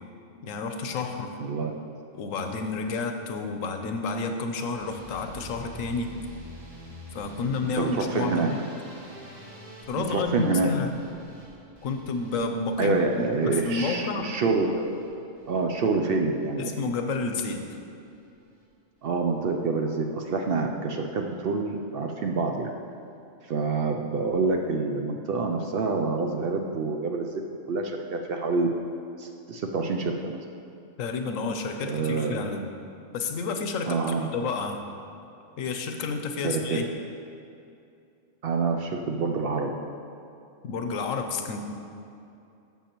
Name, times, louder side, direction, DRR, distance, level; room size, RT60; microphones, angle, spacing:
voice 1, 0.4-1.4 2.2-6.1 7.1-8.6 9.9-10.9 11.8-13.0 13.4-14.3 16.6-17.6 31.0-32.7 33.1-34.8 35.6-36.8 40.6-41.6, left 4 dB, 90° left, 6 dB, 1.1 m, -30 dB
voice 2, 1.4-1.7 7.8-8.5 10.0-10.7 12.8-16.7 19.0-22.7 23.4-27.3 27.7-28.7 29.2-30.4 31.8-32.4 33.9-34.3 36.4-36.8 38.4-39.7, right 4 dB, 60° right, 3 dB, 0.6 m, -27 dB
sound 1, 4.7-16.9 17.2-17.7 18.1-18.6 19.0-19.2 19.5-19.6 19.9-20.0, left 1 dB, 90° right, 2.0 m, -48 dB
11.5 x 7.1 x 3.0 m, 2.6 s
omnidirectional pair, 1.3 m